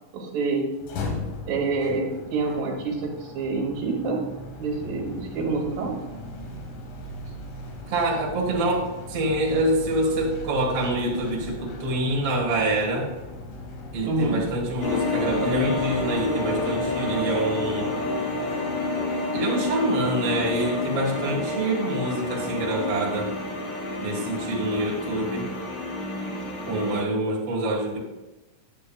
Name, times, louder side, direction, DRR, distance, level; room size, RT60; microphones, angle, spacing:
voice 1, 0.1-0.6 1.5-4.2 4.6-5.9 14.0-14.4, right 3 dB, 85° right, 0 dB, 2.9 m, -27 dB
sound 1, 0.7-18.9, left 1 dB, 75° left, 2.6 m, -38 dB
voice 2, 7.9-13.1 13.9-18.0 19.3-23.3 24.0-25.5 26.7-28.0, right 1 dB, 50° right, -1 dB, 2.2 m, -26 dB
sound 2, 14.8-27.0, left 2 dB, 55° left, 1.4 m, -29 dB
8.6 x 8.4 x 2.3 m, 1.0 s
omnidirectional pair, 3.8 m